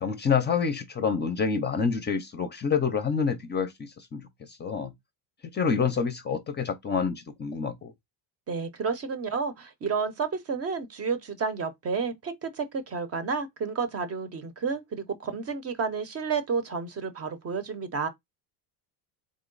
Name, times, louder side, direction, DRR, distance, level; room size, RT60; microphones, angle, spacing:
voice 1, 0.0-4.2 4.6-4.9 5.5-7.9, left 6 dB, 20° left, 0.6 m, -27 dB
voice 2, 8.5-18.1, right 5 dB, 30° right, 0.7 m, -31 dB
3.8 x 3.0 x 3.8 m
cardioid pair, 125°, 47 cm